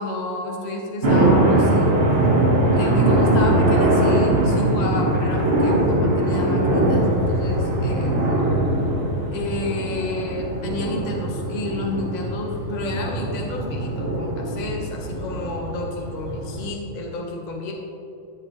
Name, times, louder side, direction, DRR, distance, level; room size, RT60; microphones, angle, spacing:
voice 1, 0.0-1.9 2.7-8.2 9.3-17.7, left 2 dB, 25° left, -1 dB, 1.1 m, -30 dB
sound 1, 1.0-16.7, right 1 dB, 30° right, 1.4 m, -21 dB
13.5 x 7.4 x 3.2 m, 2.7 s
omnidirectional pair, 2.3 m